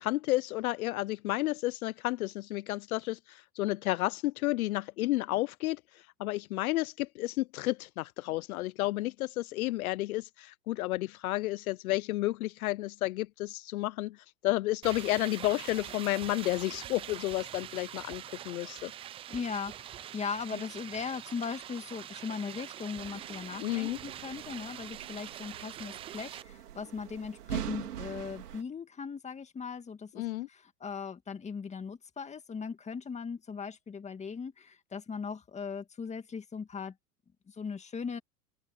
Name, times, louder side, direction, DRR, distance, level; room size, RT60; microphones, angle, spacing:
voice 1, 0.0-18.9 20.5-20.6 23.6-24.0 30.1-30.5, left 18 dB, 65° left, 0.7 m, -31 dB
sound 1, 14.8-26.4, right 11 dB, 15° right, 0.4 m, -44 dB
voice 2, 19.3-37.0 37.5-38.2, left 5 dB, 15° left, 2.1 m, -39 dB
sound 2, 23.0-28.6, right 10 dB, 85° right, 4.0 m, -43 dB
open air
hypercardioid pair, 120°, 46 cm